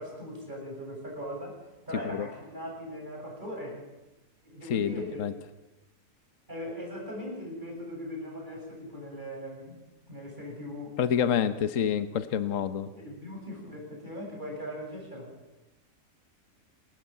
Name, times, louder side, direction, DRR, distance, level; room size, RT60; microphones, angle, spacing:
voice 1, 0.0-1.6 1.9-3.9 4.4-5.2 6.5-11.0 12.9-15.3, equal, 35° right, -1 dB, 7.7 m, -39 dB
voice 2, 4.7-5.3 11.0-12.9, left 8 dB, 65° left, 11 dB, 1.3 m, -27 dB
27.0 x 14.0 x 8.5 m, 1.0 s
omnidirectional pair, 1.5 m